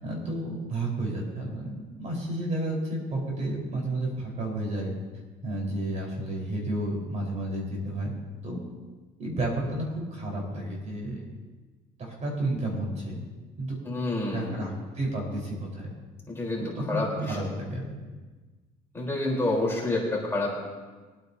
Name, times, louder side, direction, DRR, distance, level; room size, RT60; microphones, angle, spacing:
voice 1, 0.0-4.9 5.4-8.1 8.4-8.6 9.2-11.2 12.0-13.3 13.6-13.8 14.3-15.9 16.6-17.9, right 1 dB, 45° right, -2 dB, 4.4 m, -31 dB
voice 2, 13.8-14.5 16.3-17.5 18.9-20.5, left 2 dB, 15° left, -4 dB, 3.9 m, -28 dB
23.0 x 9.1 x 2.8 m, 1.3 s
cardioid pair, 110°, 17 cm